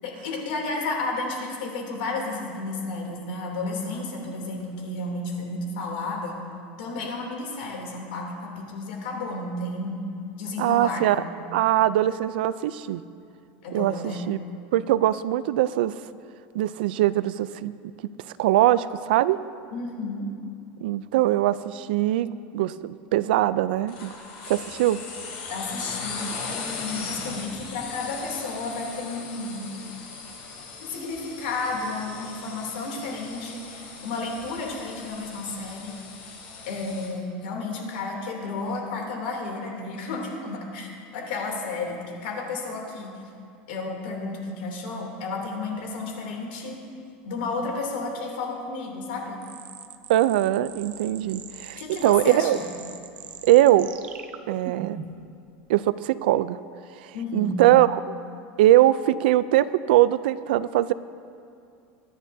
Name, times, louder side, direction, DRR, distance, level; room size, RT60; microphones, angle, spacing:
voice 1, 0.0-6.4 6.8-10.0 10.4-11.2 13.6-14.2 19.7-20.2 25.5-29.7 30.8-35.9 36.7-43.1 43.7-46.8 47.2-49.4 51.8-52.6 57.1-57.5, left 3 dB, 80° left, 0 dB, 2.9 m, -32 dB
voice 2, 10.6-11.2 11.5-13.0 13.7-14.4 14.7-15.9 16.5-17.7 18.0-18.1 18.4-19.4 20.8-24.1 24.5-25.0 50.1-52.6 53.4-53.9 54.5-55.0 55.7-56.6 57.0-58.1 58.6-60.9, right 14 dB, 80° right, 16 dB, 0.4 m, -21 dB
sound 1, 23.9-37.1, left 4 dB, 55° left, 3.0 m, -38 dB
sound 2, 49.4-55.3, right 8 dB, 25° right, 0.5 m, -41 dB
23.0 x 11.0 x 2.7 m, 2.5 s
supercardioid pair, 180°, 5 cm